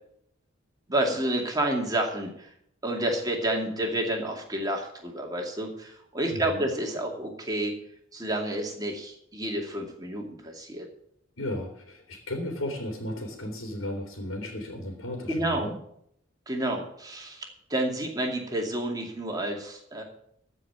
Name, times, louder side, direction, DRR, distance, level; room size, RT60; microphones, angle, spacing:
voice 1, 0.9-2.5 2.8-7.8 8.1-10.9 15.3-15.7 16.5-20.0, right 1 dB, 20° right, 1 dB, 2.4 m, -30 dB
voice 2, 6.3-6.6 11.4-15.8, left 1 dB, 80° left, 3 dB, 2.9 m, -35 dB
14.5 x 5.3 x 9.4 m, 0.71 s
head